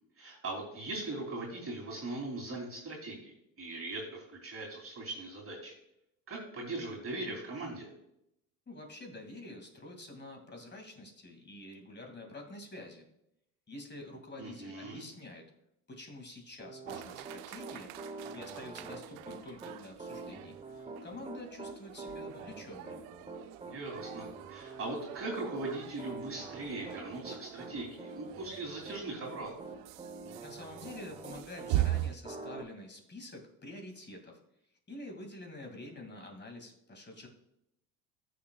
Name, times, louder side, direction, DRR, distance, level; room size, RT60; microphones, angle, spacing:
voice 1, 0.2-5.7 6.3-7.9 14.4-15.0 23.7-29.6, right 2 dB, 30° right, -2 dB, 3.1 m, -40 dB
voice 2, 8.7-13.1 13.7-15.4 15.9-17.9 18.3-23.0 30.4-34.4 34.9-37.3, left 2 dB, 20° left, 3 dB, 2.3 m, -47 dB
Piano, 16.6-31.8 32.2-32.6, right 3 dB, 15° right, 1.0 m, -45 dB
sound 1, 16.9-32.2, right 14 dB, 70° right, 0.7 m, -41 dB
14.0 x 6.6 x 2.3 m, 0.79 s
hypercardioid pair, 80°, 48 cm